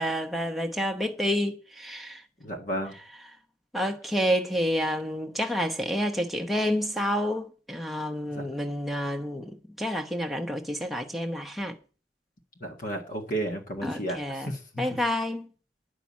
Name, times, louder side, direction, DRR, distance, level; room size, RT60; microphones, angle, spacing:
voice 1, 0.0-2.2 3.7-11.8 13.8-14.5 14.8-15.5, equal, ahead, 1.1 m, -29 dB
voice 2, 2.4-2.9 8.3-8.5 12.6-14.8, right 1 dB, 50° left, 1.7 m, -33 dB
10.5 x 6.0 x 8.6 m
head